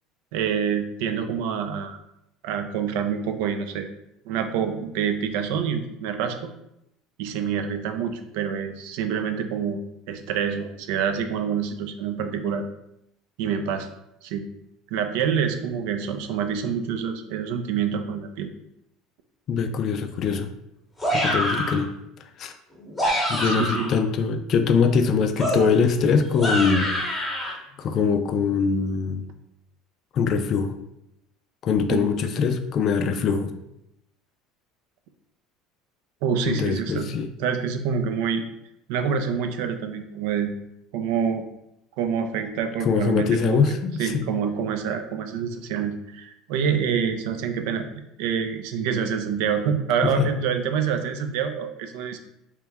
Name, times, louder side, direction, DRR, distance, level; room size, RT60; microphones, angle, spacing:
voice 1, 0.3-2.0 2.4-3.9 4.3-6.5 7.2-9.8 10.1-12.7 13.4-13.9 14.2-14.5 14.9-18.5 23.4-23.9 31.9-32.1 36.2-37.1 37.4-38.4 38.9-40.5 40.9-41.4 42.0-43.6 44.0-47.8 48.2-52.2, right 7 dB, 70° right, 7 dB, 0.4 m, -26 dB
voice 2, 19.5-20.5 21.1-21.9 22.4-22.5 23.3-26.9 27.8-29.3 30.1-30.8 31.6-33.5 36.5-37.3 42.8-44.1 50.0-50.3, left 5 dB, 35° left, 8 dB, 0.3 m, -22 dB
sound 1, 21.0-21.8 22.8-24.0 25.4-27.5, equal, 5° left, 0.8 m, -26 dB
3.3 x 3.0 x 3.4 m, 0.82 s
cardioid pair, 165°, 0 cm